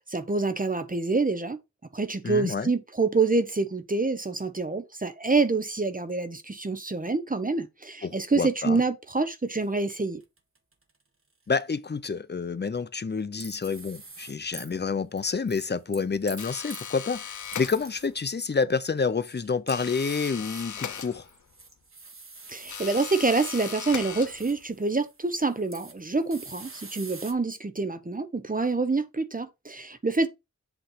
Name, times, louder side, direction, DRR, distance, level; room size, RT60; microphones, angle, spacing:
voice 1, 0.0-1.6 1.9-10.2 22.5-30.3, right 3 dB, 30° right, 0.9 m, -27 dB
voice 2, 2.2-2.7 8.0-8.8 11.5-21.3, left 5 dB, 35° left, 0.6 m, -29 dB
sound 1, 9.6-9.7 9.9-10.9 13.4-14.8 15.2-16.9 17.4-18.3 19.1-27.3, right 3 dB, 45° right, 1.4 m, -46 dB
sound 2, 16.4-18.2 19.7-21.6 22.7-24.7, left 8 dB, 85° left, 0.7 m, -38 dB
8.1 x 3.2 x 5.7 m
wide cardioid pair, 75°, 29 cm